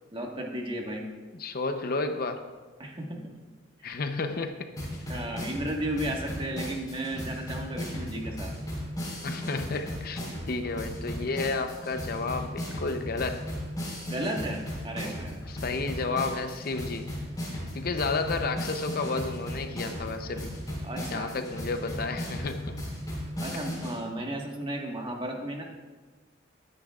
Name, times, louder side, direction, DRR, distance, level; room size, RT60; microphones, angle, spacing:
voice 1, 0.1-1.1 2.8-3.3 3.8-4.0 5.1-8.5 14.0-15.4 20.8-21.3 23.4-25.6, right 1 dB, 25° right, 1 dB, 1.4 m, -34 dB
voice 2, 1.4-2.5 3.8-4.7 9.2-10.2 10.5-13.5 15.5-17.1 17.7-20.5 21.1-22.8 23.5-23.6, left 3 dB, 50° left, 7 dB, 0.7 m, -31 dB
sound 1, 4.8-23.9, equal, 20° left, 4.0 m, -36 dB
21.0 x 10.0 x 2.4 m, 1.3 s
head